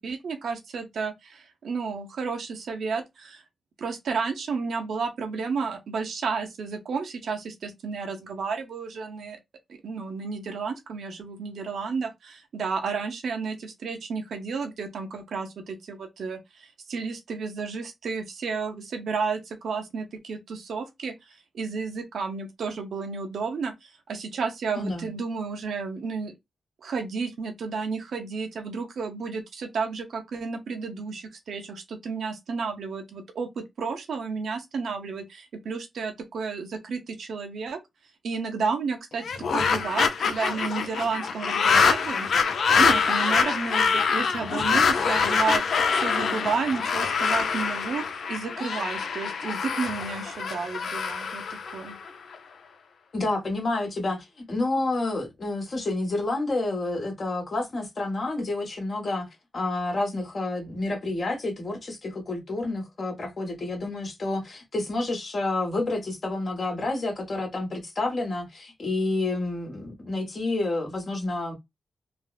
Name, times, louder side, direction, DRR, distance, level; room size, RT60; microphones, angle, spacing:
voice 1, 0.0-3.4 3.8-9.4 9.7-21.1 21.5-26.3 26.8-37.8 38.2-39.2 39.5-45.6 45.9-52.0, right 5 dB, 80° right, 0.8 m, -32 dB
voice 2, 24.8-25.1 53.1-71.5, left 2 dB, 50° left, 1.4 m, -29 dB
sound 1, 39.2-52.4, left 5 dB, 75° left, 0.5 m, -25 dB
3.3 x 2.0 x 2.4 m
cardioid pair, 60°, 0 cm